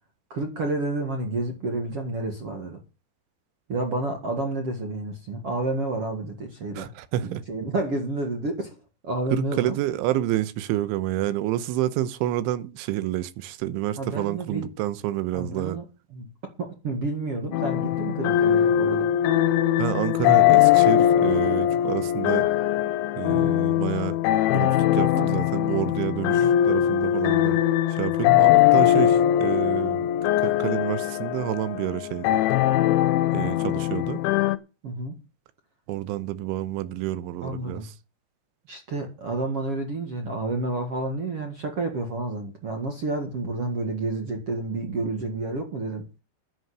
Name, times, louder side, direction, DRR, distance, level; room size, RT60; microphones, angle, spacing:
voice 1, 0.3-2.8 3.7-6.9 7.2-8.8 9.0-9.7 14.0-14.7 15.3-15.8 16.1-16.3 16.6-19.1 23.3-23.6 25.1-25.3 26.3-26.6 34.8-35.2 37.4-37.9 38.7-46.1, right 2 dB, 50° right, 1.8 m, -30 dB
voice 2, 6.7-7.4 9.3-15.8 19.8-22.5 23.2-24.2 24.5-27.6 27.9-30.1 30.4-32.4 33.3-34.2 35.9-37.9, right 13 dB, 85° right, 3.3 m, -29 dB
sound 1, 17.5-34.6, left 12 dB, 80° left, 3.1 m, -21 dB
10.5 x 7.8 x 8.1 m
omnidirectional pair, 5.5 m